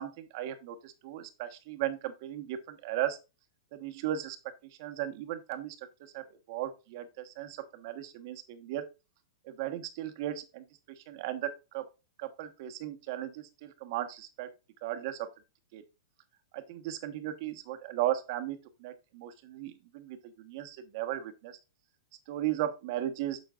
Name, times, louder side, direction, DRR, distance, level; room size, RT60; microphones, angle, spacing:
voice 1, 0.0-3.2 3.7-4.4 4.8-8.8 9.4-11.9 12.2-14.5 14.8-15.3 15.7-15.8 16.5-21.6 22.3-23.4, right 12 dB, 55° right, 1.2 m, -36 dB
9.3 x 6.1 x 2.4 m
hypercardioid pair, 125°, 2 cm